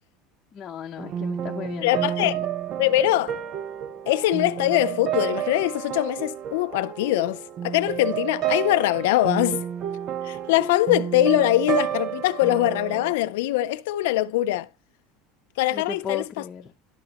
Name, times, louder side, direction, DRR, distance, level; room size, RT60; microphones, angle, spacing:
voice 1, 0.5-2.1 15.7-16.7, left 8 dB, 25° left, 0.9 m, -34 dB
sound 1, 1.0-13.1, right 10 dB, 35° right, 0.6 m, -30 dB
voice 2, 1.8-2.4 2.8-3.4 4.1-9.6 10.2-14.7 15.6-16.4, left 15 dB, 80° left, 0.4 m, -22 dB
11.5 x 5.8 x 2.9 m
cardioid pair, 160°, 0 cm